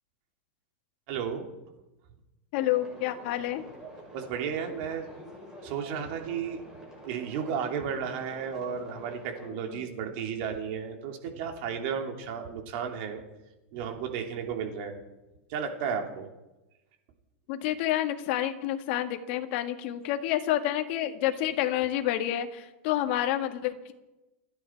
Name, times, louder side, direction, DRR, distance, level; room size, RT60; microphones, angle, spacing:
voice 1, 1.1-1.5 4.1-5.1 5.6-6.6 7.0-13.2 13.7-15.0 15.5-16.3, right 7 dB, 50° right, 3 dB, 3.0 m, -33 dB
voice 2, 2.5-3.6 9.7-9.8 17.5-23.9, left 13 dB, 50° left, 6 dB, 1.7 m, -29 dB
sound 1, 2.5-9.5, equal, 10° right, 6.8 m, -47 dB
30.0 x 10.0 x 4.6 m, 1.0 s
supercardioid pair, 150°, 7 cm